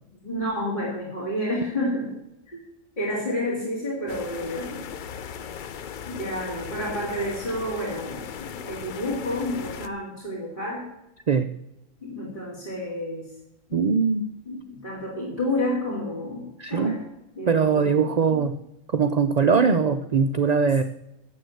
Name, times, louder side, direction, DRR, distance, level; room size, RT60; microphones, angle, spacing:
voice 1, 0.2-2.1 2.5-2.6 3.0-4.8 6.1-10.9 12.0-13.3 13.8-14.0 14.5-17.0 17.4-17.9 18.3-18.4, left 1 dB, 35° left, -7 dB, 2.8 m, -30 dB
sound 1, 4.1-9.9, left 7 dB, 55° left, 0.5 m, -37 dB
voice 2, 13.7-14.3 16.6-17.0 17.5-18.6 18.9-20.8, right 5 dB, 60° right, 8 dB, 0.4 m, -21 dB
9.3 x 7.7 x 7.7 m, 0.89 s
omnidirectional pair, 1.3 m